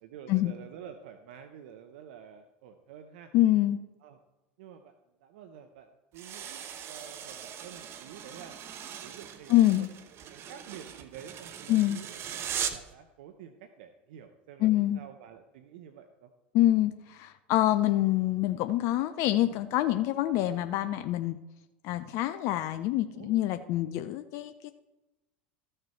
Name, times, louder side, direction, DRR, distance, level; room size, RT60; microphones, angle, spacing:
voice 1, 0.0-3.3 4.0-4.2 4.6-4.9 5.2-8.6 9.0-9.9 10.3-16.3 23.0-23.4, right 8 dB, 70° right, 7 dB, 0.8 m, -49 dB
voice 2, 3.3-3.8 9.5-9.9 11.7-12.0 14.6-15.0 16.5-21.4 21.8-24.7, left 14 dB, 55° left, 10 dB, 0.5 m, -26 dB
sound 1, 6.2-12.9, right 9 dB, 45° right, 1.0 m, -40 dB
13.5 x 6.6 x 4.4 m, 1.0 s
hypercardioid pair, 85°, 6 cm